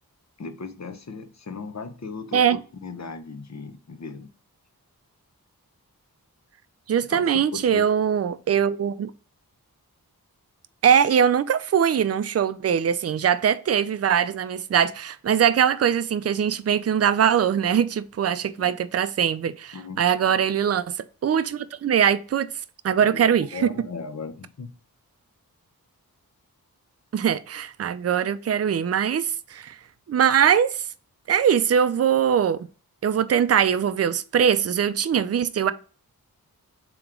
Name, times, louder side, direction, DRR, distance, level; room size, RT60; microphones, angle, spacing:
voice 1, 0.4-4.3 7.1-7.9 18.6-18.7 19.7-20.0 23.0-24.7, left 4 dB, 45° left, 0.8 m, -37 dB
voice 2, 6.9-9.1 10.8-20.9 21.2-22.5 22.8-23.7 27.1-29.8 30.1-30.8 31.3-32.7 33.0-35.7, right 8 dB, 45° right, 0.4 m, -22 dB
3.6 x 3.0 x 4.8 m
wide cardioid pair, 45°, 37 cm